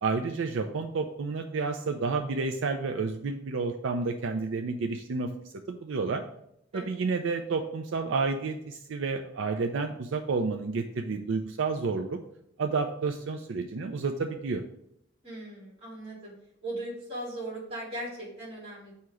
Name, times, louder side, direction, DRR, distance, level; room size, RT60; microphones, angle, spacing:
voice 1, 0.0-5.3 5.7-6.2 6.7-12.2 12.6-14.6, right 4 dB, 75° right, 5 dB, 0.4 m, -30 dB
voice 2, 15.2-16.3 16.6-18.9, right 1 dB, 30° right, -5 dB, 2.6 m, -38 dB
7.6 x 2.9 x 4.7 m, 0.75 s
head